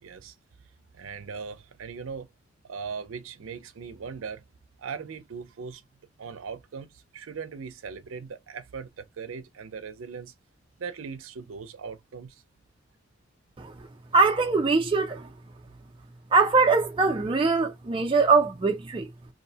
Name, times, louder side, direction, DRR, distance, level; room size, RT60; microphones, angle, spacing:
voice 1, 0.0-0.3 0.9-2.3 2.6-4.4 4.8-5.8 6.2-10.3 10.8-12.4, right 5 dB, 90° right, 0.5 m, -39 dB
voice 2, 13.6-13.9 14.1-15.3 16.3-19.1, right 4 dB, 25° right, 0.4 m, -22 dB
2.6 x 2.1 x 2.7 m
head